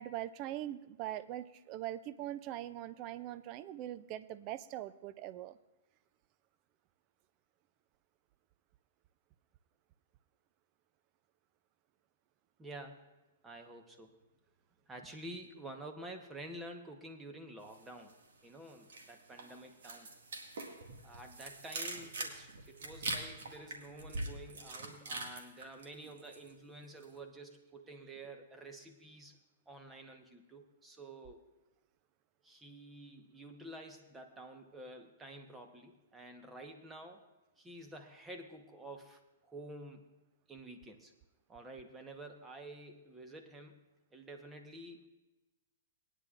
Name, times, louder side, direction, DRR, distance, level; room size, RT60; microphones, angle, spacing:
voice 1, 0.0-5.6, right 13 dB, 35° right, 15 dB, 0.5 m, -42 dB
voice 2, 12.6-13.1 13.4-14.2 14.9-18.2 18.4-20.1 21.0-29.4 29.7-31.4 32.4-37.3 37.6-40.1 40.5-41.1 41.5-43.8 44.1-45.1, right 1 dB, 10° right, 5 dB, 1.1 m, -50 dB
sound 1, 17.7-18.3 18.6-26.5 26.8-27.1, right 2 dB, 75° right, 1.9 m, -43 dB
20.0 x 9.9 x 2.5 m, 1.1 s
hypercardioid pair, 135°, 0 cm